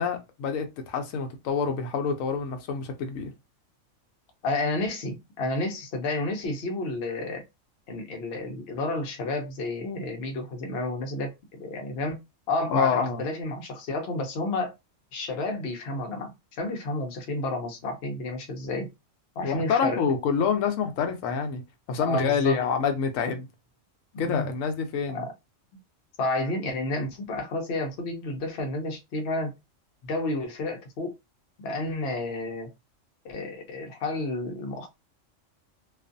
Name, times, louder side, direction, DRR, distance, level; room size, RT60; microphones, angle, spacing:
voice 1, 0.0-3.3 12.7-13.2 19.4-21.6 21.9-23.5 24.2-25.2, left 6 dB, 85° left, 1.0 m, -27 dB
voice 2, 4.4-7.4 7.9-11.3 11.6-12.2 12.5-14.7 15.1-18.9 19.4-20.0 22.0-22.6 24.1-24.5 25.1-25.3 26.2-29.5 30.0-31.2 31.6-32.7 33.2-34.9, left 2 dB, 60° left, 0.8 m, -31 dB
2.5 x 2.4 x 2.5 m
omnidirectional pair, 1.3 m